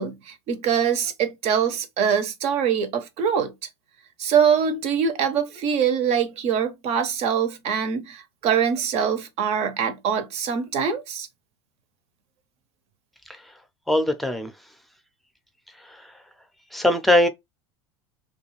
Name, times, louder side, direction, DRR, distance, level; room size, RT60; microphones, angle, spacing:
voice 1, 0.0-3.5 4.2-11.3, right 7 dB, 50° right, 0.7 m, -23 dB
voice 2, 13.9-14.5 15.8-16.0 16.7-17.3, left 1 dB, ahead, 0.6 m, -21 dB
2.3 x 2.3 x 3.1 m
hypercardioid pair, 85°, 14 cm